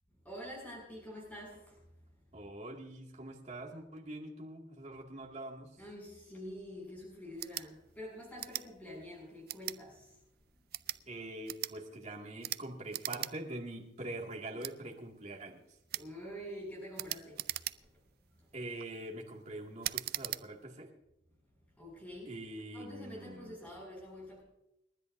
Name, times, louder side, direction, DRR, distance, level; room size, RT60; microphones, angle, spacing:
voice 1, 0.2-1.8 5.8-10.2 10.9-11.1 15.9-18.1 18.4-18.5 21.8-22.3 22.7-24.4, equal, 10° left, -4 dB, 7.0 m, -47 dB
voice 2, 2.3-5.8 11.1-15.6 18.5-20.9 22.3-23.6, right 1 dB, 35° right, -1 dB, 2.3 m, -44 dB
sound 1, 7.3-7.7 8.4-8.7 9.5-9.8 10.6-11.0 11.5-11.7 12.4-12.6 12.9-13.3 13.7-13.8 14.6-14.7 15.9-16.1 17.0-18.0 18.6-18.9 19.8-20.4, right 15 dB, 50° right, 0.4 m, -39 dB
29.5 x 10.5 x 2.7 m, 0.86 s
head